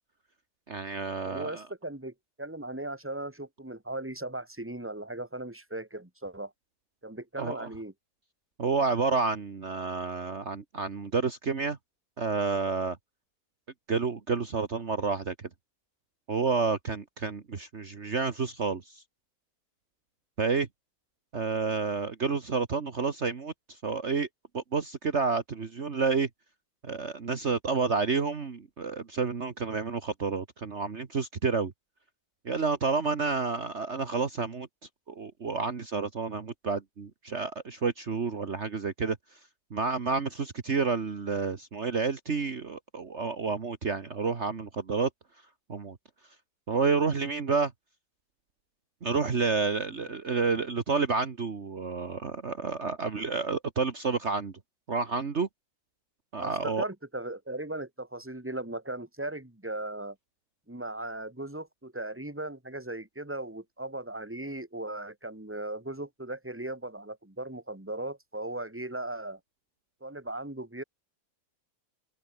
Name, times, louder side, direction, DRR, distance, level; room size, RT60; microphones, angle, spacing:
voice 1, 0.7-1.7 7.4-7.7 8.6-11.8 12.2-13.0 13.9-15.5 16.3-19.0 20.4-20.7 21.3-24.3 24.5-26.3 26.8-31.7 32.5-34.7 35.1-39.4 39.7-45.1 45.7-46.0 46.7-47.7 49.0-54.6 54.9-55.5 56.3-56.9, right 4 dB, 50° right, 1.8 m, -30 dB
voice 2, 1.2-6.5 7.0-7.9 50.0-50.1 56.4-60.2 60.7-69.4 70.0-70.8, right 2 dB, 10° right, 2.8 m, -37 dB
open air
omnidirectional pair, 1.6 m